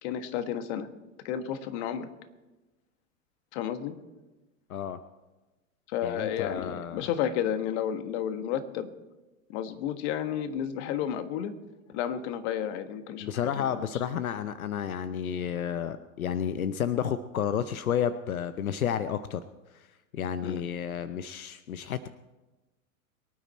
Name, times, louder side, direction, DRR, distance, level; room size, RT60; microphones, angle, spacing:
voice 1, 0.0-0.9 1.2-2.1 3.5-3.9 5.9-8.9 9.5-11.5 11.9-13.8 20.4-20.6, left 9 dB, 50° left, 10 dB, 1.5 m, -32 dB
voice 2, 6.0-7.0 13.2-19.4 20.1-22.1, left 8 dB, 85° left, 13 dB, 0.7 m, -31 dB
23.5 x 9.4 x 4.3 m, 1.1 s
hypercardioid pair, 100°, 41 cm